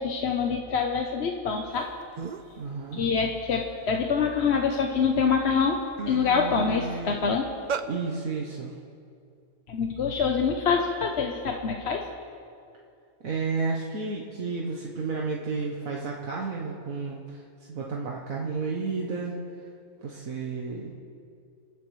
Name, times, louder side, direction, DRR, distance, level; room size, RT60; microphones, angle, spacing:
voice 1, 0.0-1.9 2.9-7.5 9.7-12.1, left 5 dB, 55° left, 3 dB, 1.0 m, -25 dB
sound 1, 1.8-1.9 2.2-2.6 3.0-4.6 5.2-5.3 5.7-7.9, right 5 dB, 85° right, 0.4 m, -35 dB
voice 2, 2.6-3.0 7.9-8.7 13.2-17.4 17.7-19.4 20.0-20.9, right 4 dB, 70° right, -2 dB, 1.5 m, -31 dB
26.0 x 11.5 x 3.2 m, 2.4 s
omnidirectional pair, 1.5 m